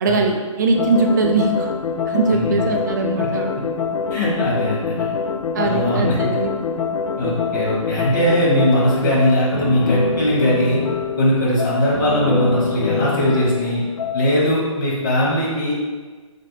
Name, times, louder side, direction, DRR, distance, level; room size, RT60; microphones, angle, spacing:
voice 1, 0.0-1.7 2.1-3.5 5.5-6.5, right 3 dB, 35° right, 2 dB, 0.4 m, -20 dB
sound 1, 0.7-14.3, left 5 dB, 70° left, 0.4 m, -25 dB
voice 2, 2.3-2.7 3.2-3.3 4.1-5.1 5.6-6.4 7.2-10.8 11.2-13.8 14.1-15.7, equal, 35° left, -5 dB, 1.1 m, -20 dB
3.8 x 3.4 x 2.2 m, 1.4 s
hypercardioid pair, 155°, 17 cm